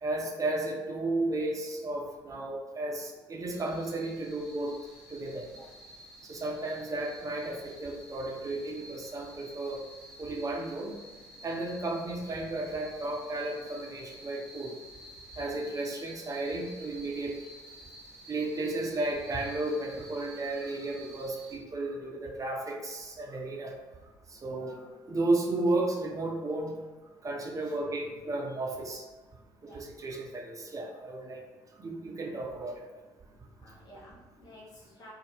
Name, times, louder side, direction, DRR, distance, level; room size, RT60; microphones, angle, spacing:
voice 1, 0.0-4.7 5.1-5.5 6.2-9.8 10.2-10.9 11.4-14.7 15.4-17.3 18.3-23.7 24.3-26.7 27.2-29.0 29.6-31.4 31.8-32.8, right 2 dB, 30° right, 0 dB, 0.6 m, -33 dB
sound 1, 3.5-21.6, equal, ahead, 0.9 m, -51 dB
voice 2, 33.6-35.1, left 1 dB, 35° left, -4 dB, 0.6 m, -53 dB
2.7 x 2.0 x 3.2 m, 1.3 s
figure-of-eight pair, 50°, 12 cm